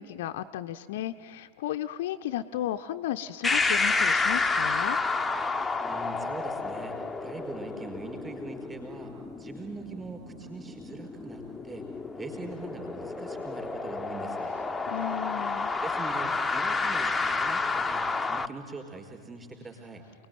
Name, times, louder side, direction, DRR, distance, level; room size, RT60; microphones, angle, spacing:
voice 1, 0.0-5.0 14.9-15.7, left 12 dB, 55° left, 8 dB, 0.6 m, -34 dB
sound 1, 3.4-18.5, left 3 dB, 10° left, 0.8 m, -30 dB
voice 2, 5.8-9.1 9.4-11.8 12.2-14.6 15.8-20.0, right 4 dB, 15° right, 2 dB, 4.7 m, -42 dB
28.5 x 19.5 x 9.3 m, 2.1 s
figure-of-eight pair, 90°, 0 cm